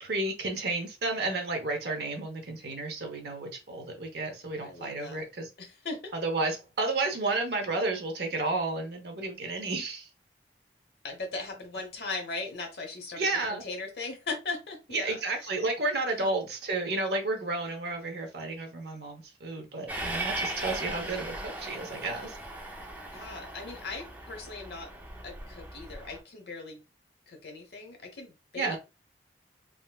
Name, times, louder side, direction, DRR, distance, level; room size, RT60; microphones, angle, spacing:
voice 1, 0.0-5.5 6.1-10.1 13.2-13.6 14.9-22.4 28.6-28.8, right 2 dB, 65° right, 4 dB, 0.8 m, -32 dB
voice 2, 4.5-5.2 5.6-6.1 11.0-15.5 16.2-16.3 23.1-24.9 25.2-26.8 27.3-28.8, left 3 dB, 65° left, 3 dB, 0.9 m, -39 dB
Train, 19.9-26.2, right 1 dB, 10° right, 0.4 m, -38 dB
3.7 x 2.2 x 2.2 m, 0.28 s
head